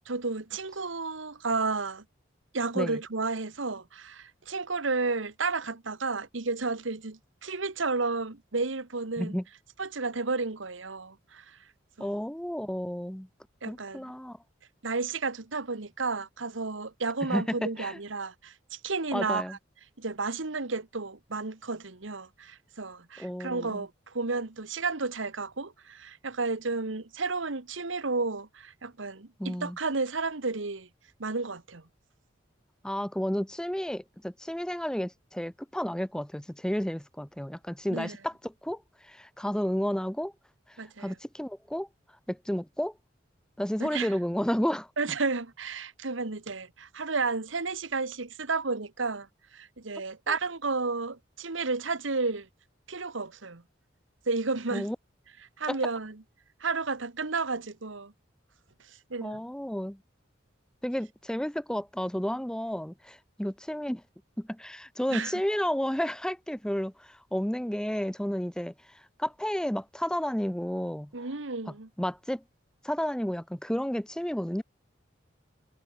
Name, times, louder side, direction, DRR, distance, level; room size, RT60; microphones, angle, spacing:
voice 1, 0.1-2.0 2.5-9.4 9.8-11.6 12.0-12.1 13.6-14.1 14.8-19.6 20.0-30.9 31.2-31.8 37.9-38.1 40.8-41.1 43.8-44.1 45.0-49.3 49.5-52.5 52.9-53.6 54.3-54.9 55.6-56.1 56.6-58.1 59.1-59.4 65.1-65.4 71.1-71.9, right 3 dB, 80° right, 1.5 m, -32 dB
voice 2, 12.0-13.3 13.7-14.4 17.3-18.0 19.1-19.6 23.2-23.8 29.4-29.8 32.8-40.3 40.7-41.9 42.3-42.9 43.6-44.9 50.3-50.4 54.7-55.0 55.7-55.8 59.2-60.0 60.8-64.0 64.4-71.1 72.0-72.4 72.8-74.6, equal, 5° left, 0.6 m, -32 dB
head